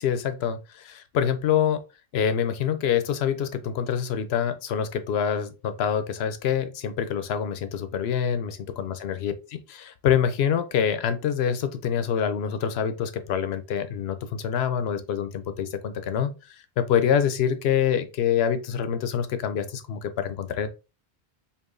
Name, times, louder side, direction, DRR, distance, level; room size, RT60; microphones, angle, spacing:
voice 1, 0.0-1.8 2.1-16.3 16.8-20.7, left 8 dB, 70° left, 0.8 m, -26 dB
4.7 x 2.9 x 2.5 m
omnidirectional pair, 1.1 m